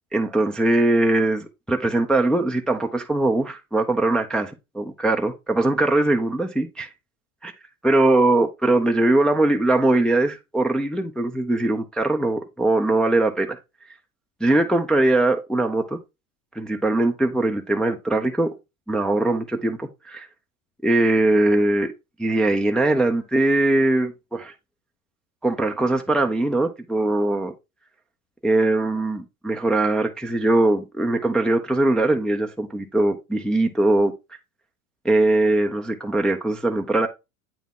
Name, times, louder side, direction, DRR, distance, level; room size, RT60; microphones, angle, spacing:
voice 1, 0.1-6.9 7.4-7.5 7.8-13.6 14.4-16.0 16.6-18.5 18.9-20.3 20.8-21.9 22.2-24.5 25.4-27.5 28.4-34.1 35.0-37.1, right 2 dB, ahead, 0.4 m, -21 dB
8.5 x 3.5 x 3.6 m
hypercardioid pair, 100°, 44 cm